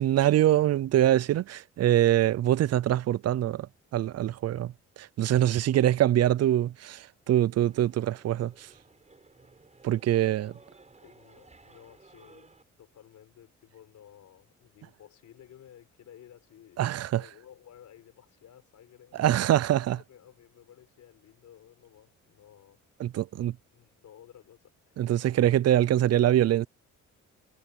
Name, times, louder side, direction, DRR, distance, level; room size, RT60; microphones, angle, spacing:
voice 1, 0.0-3.7 3.9-4.7 5.0-8.7 9.8-10.5 16.8-17.2 19.2-20.0 23.0-23.5 25.0-26.7, right 12 dB, 55° right, 0.5 m, -24 dB
sound 1, 7.6-12.6, right 3 dB, 25° right, 6.8 m, -56 dB
voice 2, 10.1-10.4 11.0-22.8 23.7-25.0, left 10 dB, 70° left, 5.1 m, -55 dB
cardioid pair, 90°, 30 cm